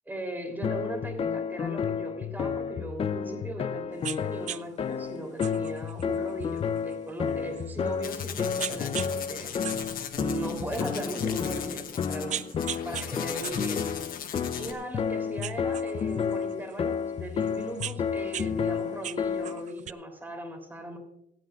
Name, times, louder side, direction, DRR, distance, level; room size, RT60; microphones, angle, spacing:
voice 1, 0.1-9.5 10.2-12.4 12.8-13.9 14.5-21.0, right 1 dB, 10° right, 4 dB, 3.1 m, -38 dB
sound 1, 0.6-19.7, left 7 dB, 35° left, 0.5 m, -31 dB
sound 2, 4.0-4.2 4.5-4.6 5.4-8.1 8.6-9.1 9.5-10.8 11.4-11.5 12.0-13.1 13.4-15.0 15.4-16.7 17.4-18.5 18.8-19.9, right 11 dB, 45° right, 0.4 m, -38 dB
sound 3, 8.0-14.7, left 8 dB, 60° left, 1.5 m, -38 dB
26.5 x 9.2 x 2.4 m, 0.79 s
cardioid pair, 110°, 17 cm